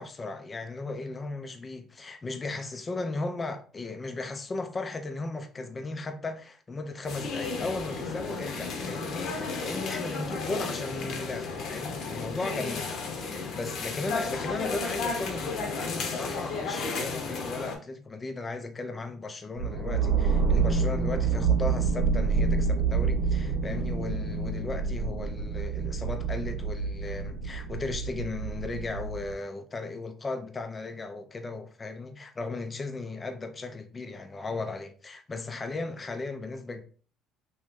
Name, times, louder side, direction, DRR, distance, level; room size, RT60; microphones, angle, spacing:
voice 1, 0.0-12.9 13.2-36.8, left 3 dB, 25° left, 0.5 m, -36 dB
sound 1, 7.0-17.7, left 4 dB, 60° left, 0.8 m, -33 dB
sound 2, 19.6-29.3, right 5 dB, 85° right, 1.3 m, -28 dB
3.0 x 3.0 x 3.5 m
cardioid pair, 125°, 0 cm